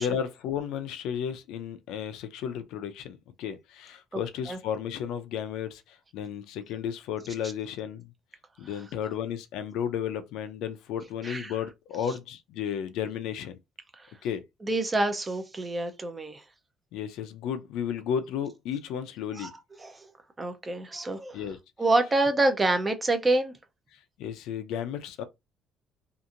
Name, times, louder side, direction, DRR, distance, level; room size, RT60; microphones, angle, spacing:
voice 1, 0.0-5.8 6.1-8.0 8.6-13.5 14.2-14.4 16.9-19.5 21.3-21.6 24.2-25.2, left 8 dB, 85° left, 0.5 m, -33 dB
voice 2, 14.6-16.4 19.3-19.5 19.8-20.1 20.4-21.4 21.8-23.5, right 2 dB, 20° right, 0.5 m, -27 dB
2.9 x 2.5 x 2.4 m
cardioid pair, 135°, 0 cm